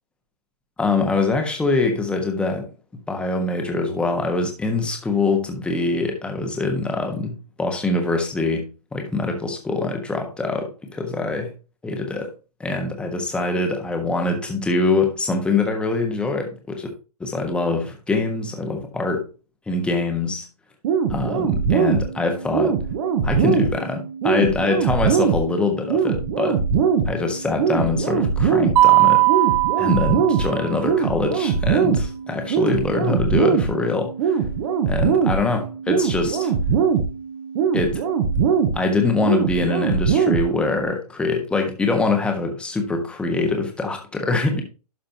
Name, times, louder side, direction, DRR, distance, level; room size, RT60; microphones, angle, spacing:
voice 1, 0.8-2.7 3.1-11.5 11.8-12.3 12.6-16.9 17.2-19.3 19.7-20.5 21.1-22.8 23.2-26.6 27.1-29.3 29.8-34.4 34.9-36.5 37.7-38.0 38.7-44.6, left 3 dB, 5° left, 3 dB, 1.3 m, -24 dB
sound 1, 20.8-40.8, right 6 dB, 40° right, 1.4 m, -22 dB
Mallet percussion, 28.8-30.8, right 19 dB, 15° right, 0.3 m, -18 dB
12.0 x 5.1 x 2.8 m, 0.32 s
hypercardioid pair, 135°, 20 cm